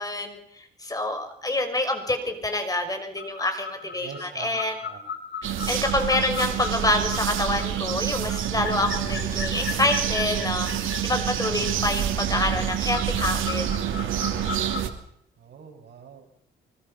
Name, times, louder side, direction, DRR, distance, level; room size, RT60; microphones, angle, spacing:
voice 1, 0.0-4.8 5.7-13.6, left 2 dB, 20° left, 5 dB, 6.0 m, -27 dB
sound 1, 3.2-14.8, left 7 dB, 70° left, 3.9 m, -37 dB
voice 2, 4.0-5.1 15.4-16.2, right 7 dB, 55° right, 3 dB, 6.9 m, -44 dB
sound 2, 5.4-14.9, right 10 dB, 80° right, 2.8 m, -27 dB
sound 3, 8.2-14.5, right 3 dB, ahead, 7.7 m, -44 dB
24.5 x 21.5 x 5.8 m, 0.72 s
cardioid pair, 90°, 20 cm